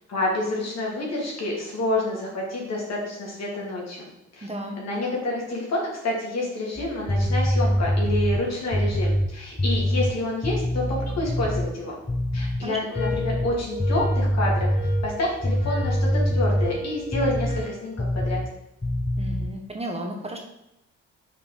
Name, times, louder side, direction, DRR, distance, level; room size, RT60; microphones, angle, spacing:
voice 1, 0.1-4.5 4.8-11.9 12.3-14.7 15.0-18.4, left 2 dB, 60° left, -2 dB, 2.7 m, -28 dB
voice 2, 4.4-4.8 12.6-12.8 19.2-20.4, right 1 dB, 20° right, 2 dB, 1.2 m, -33 dB
sound 1, 6.8-11.7 12.1-12.7 13.0-17.7 18.0-18.5 18.8-19.5, equal, 10° left, 0.7 m, -24 dB
sound 2, 12.9-17.8, left 2 dB, 80° left, 1.5 m, -36 dB
5.5 x 4.8 x 5.1 m, 0.84 s
cardioid pair, 90°, 30 cm